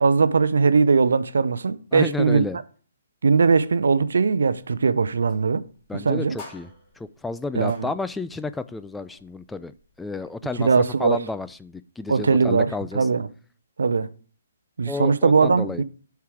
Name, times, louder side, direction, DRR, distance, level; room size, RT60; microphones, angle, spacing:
voice 1, 0.0-2.4 3.2-5.6 5.9-6.4 7.6-7.9 10.6-11.2 12.1-13.3 13.8-14.1 14.8-15.8, right 5 dB, 75° right, 0.6 m, -20 dB
voice 2, 1.9-2.6 5.9-6.7 7.0-10.7 11.0-13.1 14.9-15.8, left 3 dB, 5° left, 0.3 m, -31 dB
sound 1, 4.4-11.8, left 3 dB, 25° left, 2.8 m, -51 dB
8.1 x 4.7 x 4.8 m
figure-of-eight pair, 140°, 0 cm